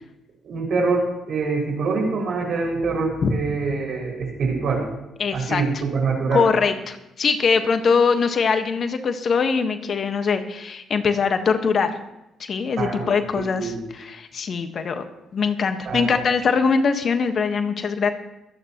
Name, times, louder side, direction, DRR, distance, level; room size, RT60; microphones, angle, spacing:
voice 1, 0.4-4.8 5.3-6.4 12.8-13.2 13.6-13.8 15.8-16.1, right 4 dB, 65° right, -1 dB, 6.0 m, -24 dB
voice 2, 5.2-5.6 6.3-12.0 12.4-15.0 15.3-18.1, left 5 dB, 55° left, 7 dB, 1.4 m, -22 dB
24.5 x 9.5 x 3.0 m, 0.90 s
hypercardioid pair, 55°, 0 cm